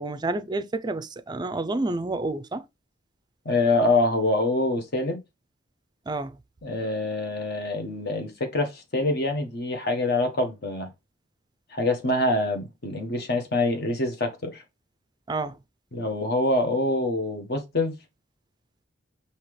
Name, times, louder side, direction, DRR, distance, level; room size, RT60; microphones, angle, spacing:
voice 1, 0.0-2.6 6.1-6.4 15.3-15.6, right 2 dB, 20° right, 0.4 m, -29 dB
voice 2, 3.4-5.2 6.6-10.9 11.7-14.6 15.9-17.9, left 2 dB, 55° left, 1.2 m, -25 dB
5.6 x 2.9 x 3.1 m
head